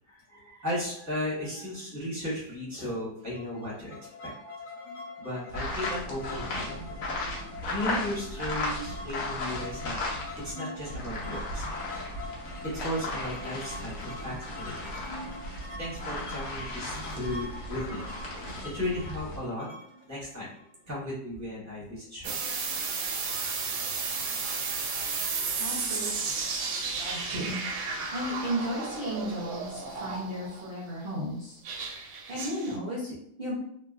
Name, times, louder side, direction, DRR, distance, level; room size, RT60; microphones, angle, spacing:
voice 1, 0.1-3.9 4.2-4.3 5.2-7.1 7.6-10.0 10.4-11.6 12.7-14.9 15.8-18.0 18.7-19.7 20.1-20.5 20.9-22.4 23.0-23.1, left 1 dB, 10° right, -7 dB, 0.9 m, -35 dB
sound 1, 3.3-21.0, left 2 dB, 35° left, 1.2 m, -43 dB
sound 2, 5.5-10.5 10.8-19.4, left 2 dB, 60° left, 1.0 m, -36 dB
sound 3, 22.2-30.7 31.6-32.8, right 4 dB, 90° right, 1.3 m, -33 dB
voice 2, 25.6-27.6 28.1-33.5, equal, 50° right, -7 dB, 0.7 m, -35 dB
2.9 x 2.5 x 2.4 m, 0.71 s
omnidirectional pair, 1.9 m